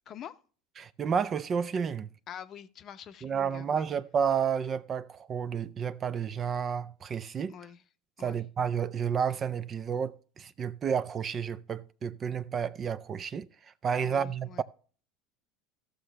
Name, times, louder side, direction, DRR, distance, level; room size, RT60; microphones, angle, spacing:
voice 1, 0.1-0.4 2.3-3.9 7.5-7.8 8.2-8.4 14.0-14.6, left 9 dB, 45° left, 0.7 m, -46 dB
voice 2, 0.8-2.1 3.2-7.5 8.2-13.5 13.8-14.6, right 7 dB, 35° right, 0.5 m, -31 dB
14.5 x 6.4 x 3.3 m
hypercardioid pair, 95°, 0 cm